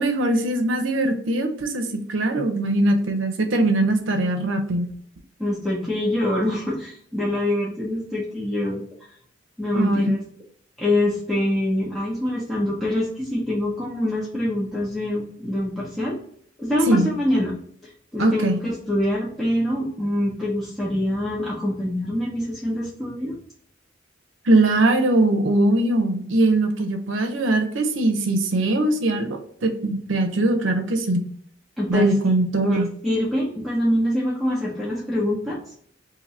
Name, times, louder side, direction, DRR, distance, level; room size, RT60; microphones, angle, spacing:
voice 1, 0.0-4.9 9.7-10.1 16.9-17.1 18.2-18.6 24.5-31.2 31.9-32.9, right 2 dB, 80° right, 6 dB, 0.6 m, -21 dB
voice 2, 5.4-8.8 9.6-10.2 10.8-16.2 16.6-17.6 17.8-23.4 31.8-32.3 32.6-35.6, left 1 dB, ahead, -7 dB, 0.6 m, -25 dB
2.7 x 2.6 x 4.2 m, 0.62 s
head